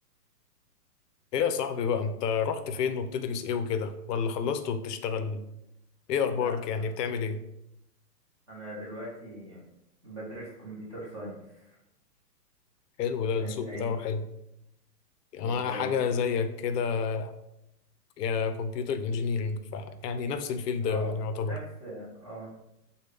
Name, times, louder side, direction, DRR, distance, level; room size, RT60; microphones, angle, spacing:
voice 1, 1.3-5.4 6.1-7.4 13.0-14.2 15.3-17.3 18.2-21.6, left 6 dB, 75° left, 9 dB, 0.6 m, -29 dB
voice 2, 6.4-6.9 8.5-9.6 10.0-11.8 13.4-13.9 15.4-15.9 20.9-21.1 21.4-22.5, right 1 dB, 20° right, -8 dB, 0.6 m, -41 dB
3.4 x 2.2 x 3.2 m, 0.83 s
hypercardioid pair, 155°, 48 cm